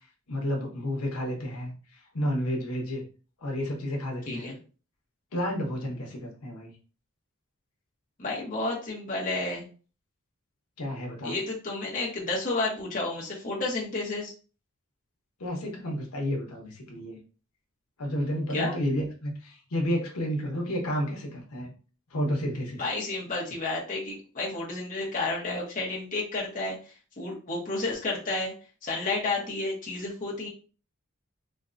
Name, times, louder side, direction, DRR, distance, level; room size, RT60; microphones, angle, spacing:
voice 1, 0.3-3.1 3.4-4.5 5.3-6.7 10.8-11.4 15.4-17.2 18.0-21.7 22.1-22.9 29.4-29.5, equal, 80° left, 0 dB, 0.9 m, -31 dB
voice 2, 4.3-4.6 8.2-9.6 11.2-14.3 18.5-18.7 22.8-28.5 28.8-30.5, left 2 dB, 35° left, -4 dB, 0.9 m, -31 dB
4.3 x 2.2 x 2.5 m, 0.37 s
head